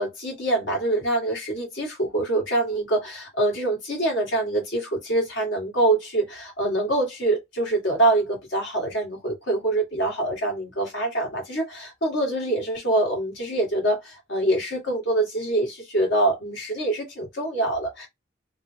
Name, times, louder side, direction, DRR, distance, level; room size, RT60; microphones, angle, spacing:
voice 1, 0.0-18.1, right 2 dB, 90° left, 2.0 m, -25 dB
3.9 x 2.4 x 3.4 m
head